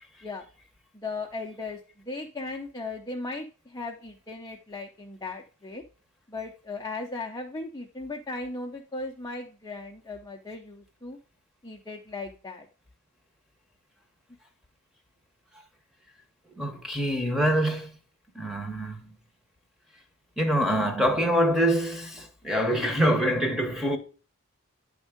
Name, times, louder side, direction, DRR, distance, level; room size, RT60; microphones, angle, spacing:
voice 1, 0.9-1.8 2.1-5.8 6.3-11.2 11.6-12.7 20.7-20.9, left 3 dB, 15° left, 0.7 m, -37 dB
voice 2, 16.6-17.9 18.3-19.1 20.4-24.0, equal, ahead, 1.1 m, -25 dB
9.6 x 3.6 x 5.1 m
head